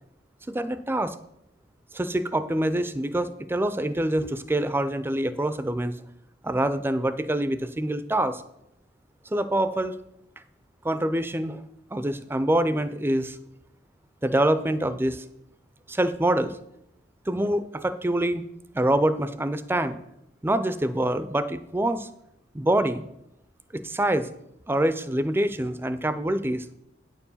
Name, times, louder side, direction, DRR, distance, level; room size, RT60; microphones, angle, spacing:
voice 1, 0.5-1.2 1.9-5.9 6.4-8.4 9.3-10.0 10.8-11.6 11.9-13.4 14.2-15.2 15.9-16.6 17.3-18.5 18.7-20.0 20.4-22.1 22.5-23.0 23.7-24.3 24.7-26.7, right 1 dB, 10° right, 12 dB, 0.4 m, -25 dB
9.5 x 4.6 x 7.1 m, 0.80 s
head